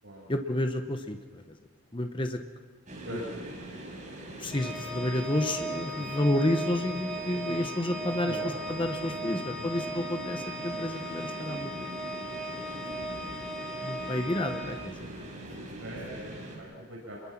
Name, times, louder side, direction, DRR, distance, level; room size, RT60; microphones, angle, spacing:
voice 1, 0.3-1.6 1.9-2.4 3.1-3.2 4.4-8.4 8.7-11.9 13.8-15.1, left 1 dB, 25° left, 6 dB, 1.1 m, -30 dB
sound 1, 2.9-16.6, right 1 dB, 40° right, 5.4 m, -42 dB
Organ, 4.5-15.4, right 1 dB, ahead, 2.7 m, -38 dB
voice 2, 8.2-8.5 9.6-9.7 10.7-10.8 14.2-14.4 15.8-17.2, right 1 dB, 70° right, -3 dB, 7.2 m, -41 dB
27.0 x 22.0 x 6.0 m, 1.5 s
head